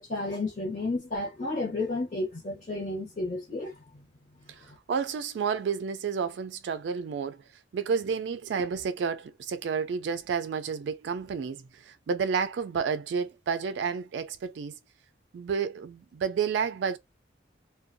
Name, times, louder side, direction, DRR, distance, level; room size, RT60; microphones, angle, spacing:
voice 1, 0.0-3.7, left 2 dB, 45° left, 0.8 m, -32 dB
voice 2, 4.5-14.8 15.3-17.0, right 6 dB, 75° right, 0.3 m, -31 dB
2.6 x 2.2 x 2.5 m
head